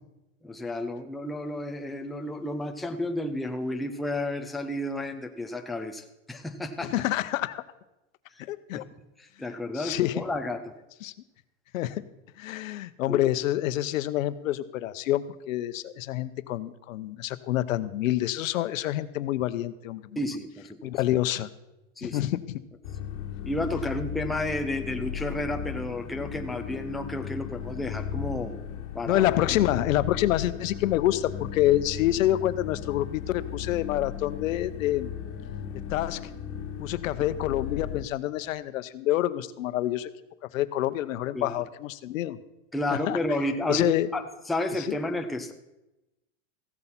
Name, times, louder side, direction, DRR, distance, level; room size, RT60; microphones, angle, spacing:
voice 1, 0.4-6.9 8.8-8.9 9.2-10.6 13.1-13.2 20.2-20.9 22.0-22.2 23.4-28.6 28.9-29.3 41.3-41.6 42.7-45.5, left 1 dB, ahead, 5 dB, 0.4 m, -31 dB
voice 2, 6.8-7.6 8.5-8.9 9.7-10.2 11.0-11.1 11.7-12.0 12.4-20.0 20.8-21.5 22.0-22.6 29.1-35.1 35.9-36.2 36.8-40.1 40.5-42.4 42.9-43.2 43.7-44.1 44.9-45.0, left 14 dB, 85° left, 13 dB, 0.9 m, -27 dB
sound 1, 22.8-38.0, left 9 dB, 60° left, 1.6 m, -36 dB
15.0 x 7.9 x 5.8 m, 0.94 s
supercardioid pair, 150°, 39 cm